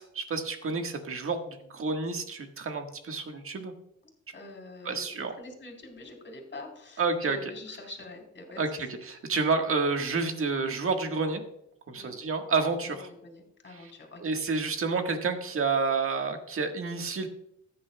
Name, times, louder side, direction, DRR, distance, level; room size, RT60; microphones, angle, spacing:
voice 1, 0.0-3.7 4.8-5.3 7.0-7.4 8.6-11.4 11.9-13.1 14.2-17.3, right 4 dB, 45° right, 5 dB, 1.5 m, -29 dB
voice 2, 4.3-5.1 5.4-8.6 8.9-9.0 12.0-12.1 12.8-14.4, left 2 dB, 40° left, 2 dB, 3.5 m, -45 dB
15.0 x 9.6 x 2.3 m, 0.75 s
cardioid pair, 90°, 30 cm